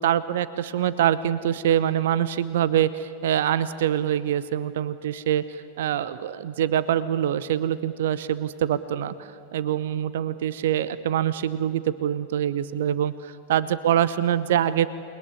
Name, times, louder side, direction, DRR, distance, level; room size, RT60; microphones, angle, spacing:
voice 1, 0.0-14.9, right 10 dB, 55° right, 16 dB, 0.8 m, -24 dB
29.0 x 21.0 x 9.7 m, 2.6 s
figure-of-eight pair, 90°, 0 cm